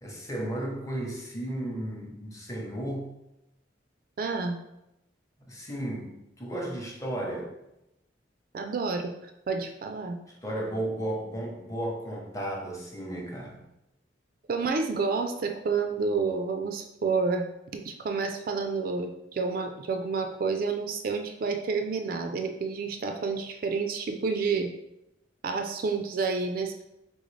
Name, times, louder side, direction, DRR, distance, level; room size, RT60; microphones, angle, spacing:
voice 1, 0.0-3.1 5.5-7.5 10.4-13.6, right 1 dB, 15° left, 0 dB, 0.7 m, -34 dB
voice 2, 4.2-4.6 8.5-10.2 14.5-17.5 17.7-24.7 25.4-26.8, right 4 dB, 50° right, 5 dB, 0.3 m, -29 dB
3.8 x 3.8 x 3.2 m, 0.87 s
head